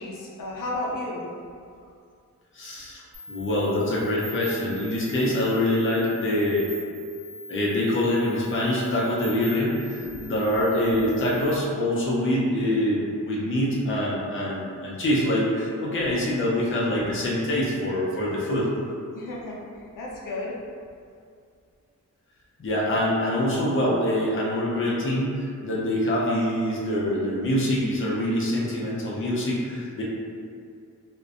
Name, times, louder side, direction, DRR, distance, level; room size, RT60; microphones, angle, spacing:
voice 1, 0.0-1.3 2.9-3.0 10.0-10.2 19.1-19.6 20.0-20.6, left 2 dB, 90° left, -4 dB, 0.5 m, -33 dB
voice 2, 2.5-6.7 7.5-18.7 22.6-30.0, left 1 dB, 40° left, -5 dB, 0.5 m, -25 dB
sound 1, 3.1-11.5, left 1 dB, 50° right, 1.0 m, -43 dB
2.5 x 2.1 x 2.4 m, 2.3 s
wide cardioid pair, 135°, 32 cm